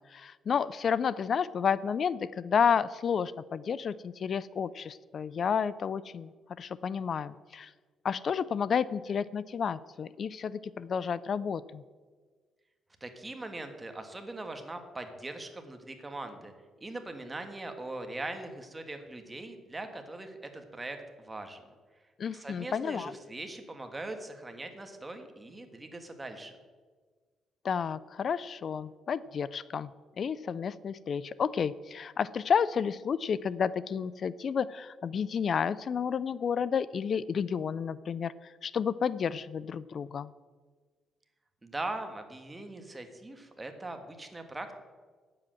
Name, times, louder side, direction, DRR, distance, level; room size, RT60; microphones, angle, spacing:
voice 1, 0.1-6.3 6.6-7.7 8.0-11.8 22.2-23.1 27.6-29.9 30.2-40.3, left 7 dB, 50° left, 19 dB, 0.4 m, -31 dB
voice 2, 13.0-16.5 16.8-21.0 21.2-21.7 22.3-26.5 41.6-44.8, right 2 dB, 20° right, 6 dB, 1.6 m, -41 dB
9.5 x 7.7 x 7.7 m, 1.5 s
cardioid pair, 90°, 0 cm